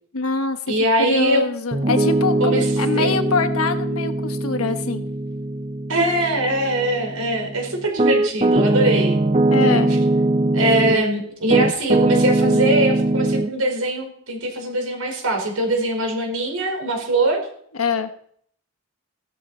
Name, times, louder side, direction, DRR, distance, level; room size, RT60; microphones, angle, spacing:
voice 1, 0.1-0.6 1.0-5.0 9.5-9.9 17.8-18.1, left 4 dB, 80° left, 8 dB, 1.3 m, -23 dB
voice 2, 0.7-1.4 2.4-2.7 3.0-3.2 5.9-9.2 9.6-9.8 10.5-17.4, right 1 dB, 80° right, 2 dB, 5.1 m, -22 dB
Piano, 1.7-11.1 11.5-13.5, right 2 dB, 25° right, 0.6 m, -21 dB
16.5 x 12.5 x 4.4 m, 0.62 s
head